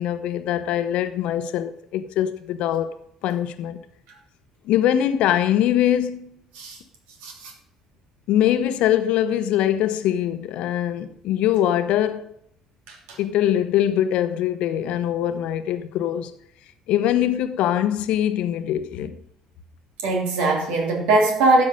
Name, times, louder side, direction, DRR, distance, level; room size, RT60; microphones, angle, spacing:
voice 1, 0.0-2.9 3.2-3.8 4.6-6.4 8.3-12.3 13.2-16.3 16.9-19.2, left 11 dB, 60° left, 0.9 m, -22 dB
voice 2, 12.9-13.2 20.0-21.6, right 2 dB, 65° right, 3.2 m, -21 dB
12.5 x 8.5 x 5.2 m
figure-of-eight pair, 50°, 2 cm